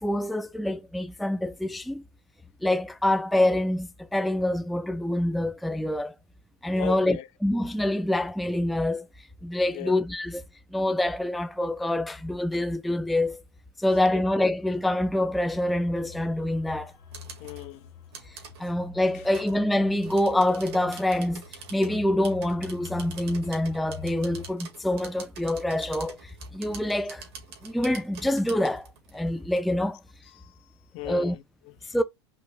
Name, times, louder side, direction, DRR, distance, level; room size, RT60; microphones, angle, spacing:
voice 1, 0.0-2.0 2.6-6.1 6.6-9.1 9.4-10.4 10.7-13.4 13.8-16.9 18.6-21.4 21.7-27.2 27.6-28.9 29.1-30.0 31.0-31.4 31.9-32.0, left 1 dB, ahead, 0.4 m, -26 dB
voice 2, 6.7-7.3 9.7-9.9 17.4-17.9 30.4-30.5 30.9-32.0, left 12 dB, 50° left, 0.7 m, -37 dB
sound 1, 14.7-24.5, left 7 dB, 85° left, 1.6 m, -46 dB
sound 2, 16.9-17.7 18.1-18.6 19.1-19.6 20.0-29.6, right 6 dB, 80° right, 2.0 m, -46 dB
5.1 x 2.3 x 2.3 m
hypercardioid pair, 110°, 13 cm